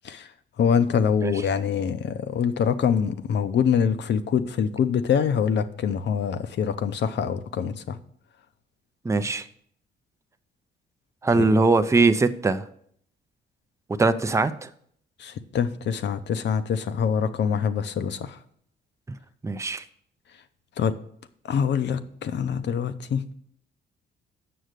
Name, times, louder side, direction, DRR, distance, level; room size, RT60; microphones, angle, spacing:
voice 1, 0.6-8.0 11.4-11.6 15.2-18.4 20.8-20.9 21.4-23.2, left 7 dB, 60° left, 11 dB, 0.8 m, -25 dB
voice 2, 9.0-9.4 11.2-12.6 13.9-14.7 19.4-19.8, right 3 dB, 15° right, 10 dB, 0.6 m, -21 dB
7.9 x 6.4 x 6.6 m, 0.66 s
cardioid pair, 90°, 20 cm